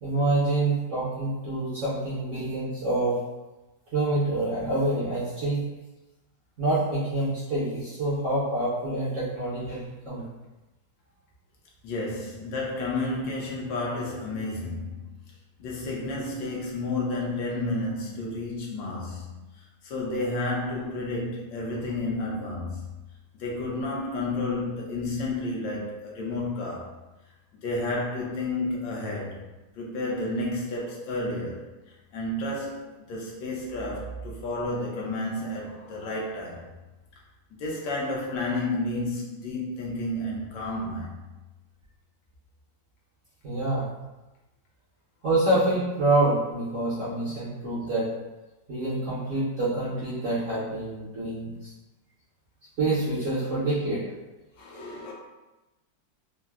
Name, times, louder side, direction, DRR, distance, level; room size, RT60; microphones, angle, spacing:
voice 1, 0.0-3.2 3.9-5.6 6.6-10.2 43.4-43.8 45.2-48.1 48.7-51.5 52.8-54.0, right 2 dB, 55° right, -9 dB, 0.9 m, -26 dB
voice 2, 11.8-15.1 15.6-22.8 23.3-26.9 27.6-29.4 29.8-31.6 32.1-36.7 37.5-41.2 54.6-55.1, left 2 dB, 75° left, -3 dB, 1.3 m, -31 dB
3.7 x 2.0 x 2.3 m, 1.1 s
omnidirectional pair, 2.0 m